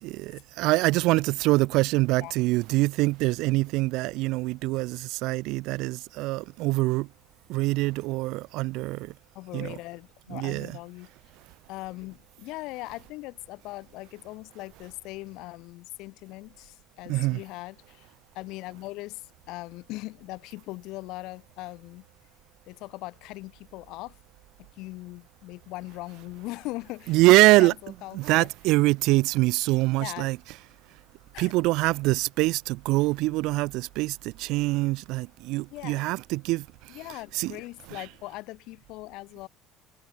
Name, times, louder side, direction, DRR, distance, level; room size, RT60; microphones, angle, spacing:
voice 1, 0.0-7.1 7.5-9.1 9.5-9.7 10.3-10.8 17.1-17.4 27.1-27.7 28.1-30.4 31.4-36.7 37.3-37.6 37.9-38.0, right 21 dB, 75° right, 0.7 m, -24 dB
voice 2, 9.3-11.1 11.7-22.1 22.7-24.2 24.6-27.2 27.4-28.5 30.0-30.3 31.3-31.5 35.7-36.0 36.9-39.5, left 20 dB, 70° left, 1.2 m, -40 dB
cardioid pair, 120°, 0 cm